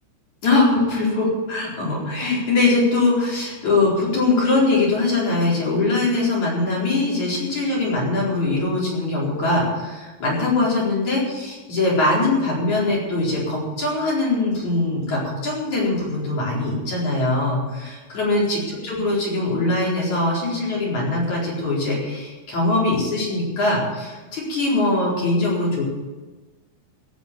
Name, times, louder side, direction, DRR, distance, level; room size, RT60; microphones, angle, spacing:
voice 1, 0.4-25.8, left 2 dB, 35° left, -5 dB, 5.1 m, -22 dB
18.0 x 8.8 x 7.0 m, 1.2 s
omnidirectional pair, 5.9 m